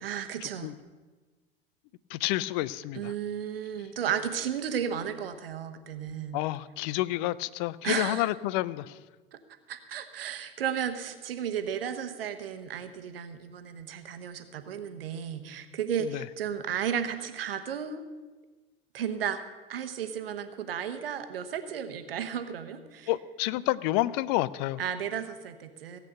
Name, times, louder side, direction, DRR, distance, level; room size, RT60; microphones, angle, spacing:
voice 1, 0.0-0.7 2.9-6.4 7.8-8.3 9.7-18.0 18.9-23.1 24.8-26.0, right 8 dB, 70° right, 10 dB, 1.1 m, -34 dB
voice 2, 2.1-3.1 6.3-9.0 16.0-16.2 23.1-24.8, left 16 dB, 50° left, 18 dB, 0.5 m, -29 dB
16.5 x 8.2 x 6.6 m, 1.3 s
figure-of-eight pair, 70°, 30 cm